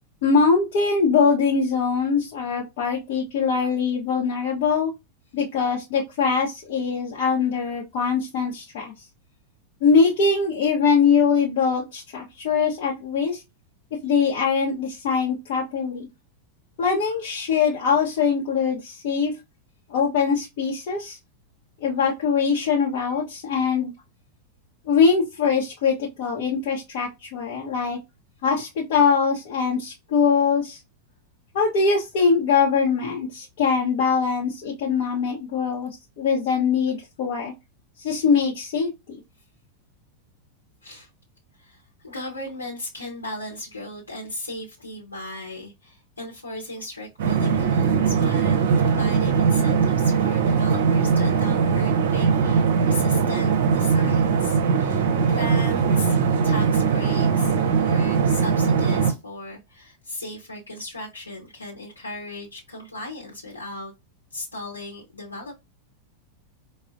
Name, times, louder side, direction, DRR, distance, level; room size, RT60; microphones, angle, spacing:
voice 1, 0.2-4.9 5.3-8.9 9.8-13.4 14.0-16.1 16.8-19.3 19.9-21.2 21.8-23.9 24.9-28.0 28.4-30.8 31.5-35.9 36.2-37.5 38.0-39.2, left 5 dB, 50° left, 0.8 m, -22 dB
voice 2, 41.6-56.2 56.4-63.9 64.3-65.5, left 1 dB, 80° left, 0.9 m, -37 dB
sound 1, 47.2-59.1, right 6 dB, 55° right, 0.5 m, -20 dB
4.9 x 2.0 x 2.5 m
figure-of-eight pair, 90°, 0 cm